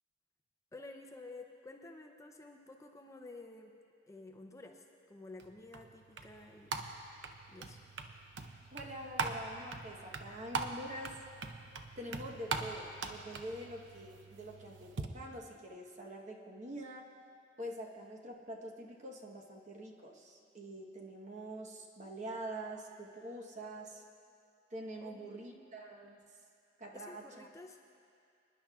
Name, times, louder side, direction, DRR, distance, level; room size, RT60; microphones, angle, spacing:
voice 1, 0.7-3.7 4.1-6.8 7.5-7.8 25.0-25.8 26.9-27.8, left 2 dB, 15° left, 3 dB, 0.5 m, -52 dB
sound 1, 5.4-15.1, right 4 dB, 80° right, 0.7 m, -42 dB
voice 2, 8.7-11.2 12.0-17.0 17.6-24.0 24.7-26.2 26.8-27.5, right 1 dB, 40° right, 0 dB, 1.0 m, -45 dB
25.5 x 10.5 x 2.4 m, 2.5 s
head